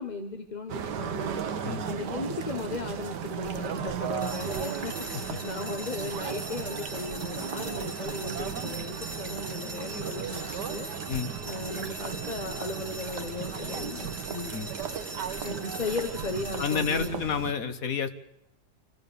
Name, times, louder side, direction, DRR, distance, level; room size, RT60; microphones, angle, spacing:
voice 1, 0.0-1.4 1.9-10.9 11.4-14.6 15.4-17.2, left 3 dB, 30° left, 6 dB, 1.1 m, -36 dB
sound 1, 0.7-17.5, right 8 dB, 85° right, 1.6 m, -36 dB
sound 2, 2.4-16.7, right 4 dB, 30° right, 1.4 m, -49 dB
sound 3, 4.2-17.1, right 1 dB, 10° right, 1.8 m, -41 dB
voice 2, 16.6-18.1, left 7 dB, 60° left, 10 dB, 1.6 m, -29 dB
26.5 x 14.5 x 6.9 m, 0.86 s
omnidirectional pair, 1.8 m